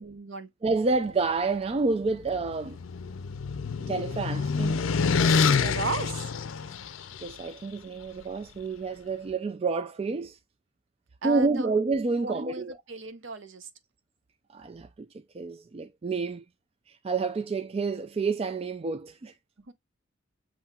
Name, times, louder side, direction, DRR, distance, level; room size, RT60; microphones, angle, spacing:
voice 1, 0.0-0.5 5.6-6.3 11.2-11.7 12.1-13.7 19.7-19.8, right 4 dB, 65° right, 0.8 m, -35 dB
voice 2, 0.6-2.8 3.8-5.5 7.2-10.4 11.2-12.8 14.5-15.1 15.3-16.4 16.9-19.3, right 3 dB, 30° right, 0.3 m, -29 dB
sound 1, 2.1-7.3, left 5 dB, 75° left, 0.5 m, -27 dB
7.3 x 3.1 x 2.3 m
head